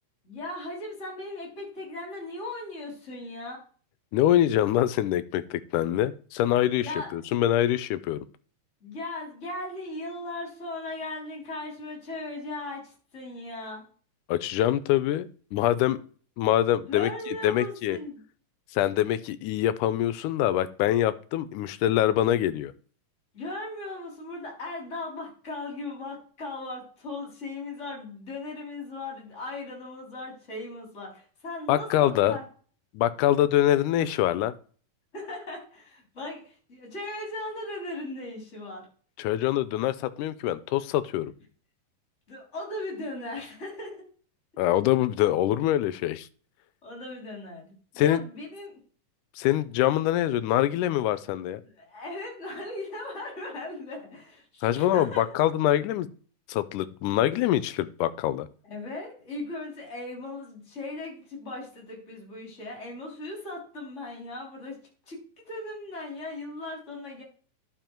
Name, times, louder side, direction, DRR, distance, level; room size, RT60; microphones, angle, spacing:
voice 1, 0.2-3.6 6.8-7.1 8.8-13.8 16.8-18.2 23.3-32.4 35.1-38.8 42.3-44.0 46.8-48.8 51.6-55.3 58.6-64.8 65.1-67.2, left 2 dB, 20° left, -1 dB, 3.4 m, -38 dB
voice 2, 4.1-8.2 14.3-16.0 16.4-18.0 18.7-22.7 31.7-32.4 32.9-34.5 39.2-41.3 44.6-46.3 48.0-48.2 49.4-51.6 54.6-56.1 56.5-58.5, left 12 dB, 80° left, 14 dB, 2.1 m, -24 dB
11.5 x 5.5 x 4.5 m, 0.42 s
omnidirectional pair, 3.8 m